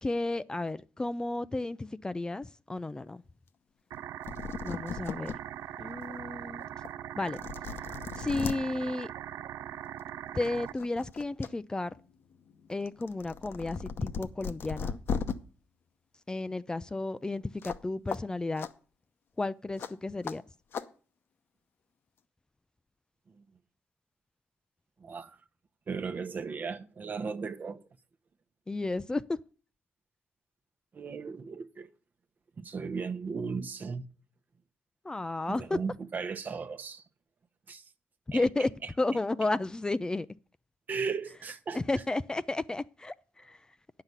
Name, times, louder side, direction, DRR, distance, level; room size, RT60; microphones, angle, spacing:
voice 1, 0.0-3.2 4.6-5.3 5.8-6.7 7.2-7.4 8.1-9.1 10.3-12.0 12.7-15.0 16.3-18.7 19.4-20.4 28.7-29.4 35.0-35.8 38.3-38.7 39.0-40.3 41.7-44.0, left 2 dB, 15° left, 0.4 m, -32 dB
sound 1, 3.9-10.7, right 11 dB, 75° right, 0.4 m, -41 dB
sound 2, 4.0-4.1 4.2-5.4 5.9-6.0 6.8-6.9 7.3-8.6 9.8-10.0 10.4-11.5 11.8-15.3 17.6-17.8 18.1-18.2 18.6-18.7 19.8-19.9 20.2-20.4 20.7-20.9, left 6 dB, 60° left, 0.9 m, -37 dB
voice 2, 25.0-25.4 25.9-27.8 30.9-31.9 32.6-34.1 35.5-37.0 37.7-37.8 38.3-38.4 40.9-41.8, right 5 dB, 40° right, 0.9 m, -36 dB
9.4 x 5.8 x 8.1 m
cardioid pair, 85°, 4 cm